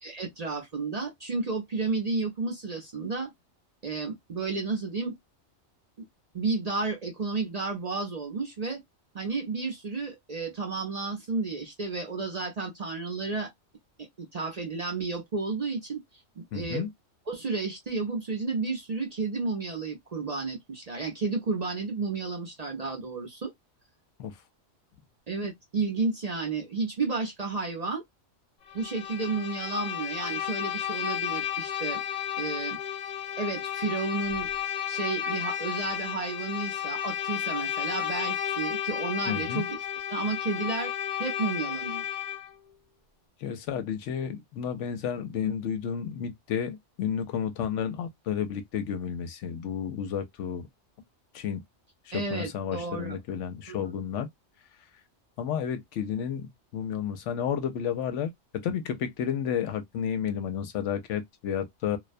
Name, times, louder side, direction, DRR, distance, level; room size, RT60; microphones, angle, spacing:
voice 1, 0.0-3.3 3.8-5.1 6.0-6.1 6.3-8.8 9.1-13.5 14.2-16.0 16.4-16.8 17.3-23.5 25.3-28.0 28.7-32.0 32.4-32.8 33.4-34.5 34.9-39.7 40.1-40.9 41.2-42.1 52.1-53.2 53.7-53.8, right 4 dB, 45° right, 0.6 m, -32 dB
voice 2, 16.5-16.9 24.2-24.4 39.3-39.6 43.4-50.7 51.3-51.6 52.1-54.3 55.4-62.0, left 8 dB, 80° left, 0.9 m, -31 dB
Bowed string instrument, 28.7-42.6, left 10 dB, 60° left, 0.4 m, -33 dB
2.3 x 2.1 x 2.4 m
omnidirectional pair, 1.3 m